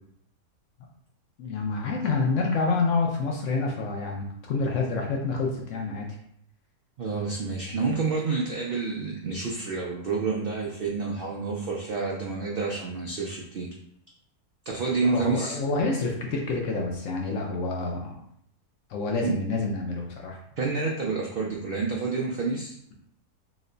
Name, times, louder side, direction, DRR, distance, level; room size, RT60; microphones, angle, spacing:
voice 1, 1.4-6.1 15.1-18.1 18.9-20.4, left 3 dB, 65° left, 0 dB, 0.8 m, -28 dB
voice 2, 7.0-13.7 14.7-15.6 19.2-19.4 20.6-22.8, right 4 dB, 85° right, -2 dB, 0.5 m, -29 dB
3.0 x 2.1 x 3.7 m, 0.71 s
omnidirectional pair, 1.6 m